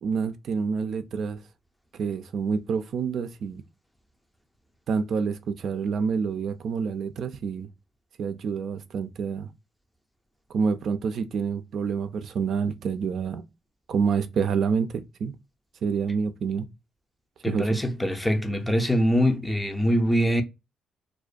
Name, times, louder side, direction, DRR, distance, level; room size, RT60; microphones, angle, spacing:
voice 1, 0.0-1.4 2.0-3.6 4.9-7.7 8.2-9.5 10.5-13.5 13.9-15.3 15.8-16.7 17.5-17.8, right 6 dB, 65° right, 0.3 m, -27 dB
voice 2, 17.4-20.4, equal, 5° left, 0.5 m, -23 dB
2.4 x 2.1 x 2.4 m
cardioid pair, 90°, 0 cm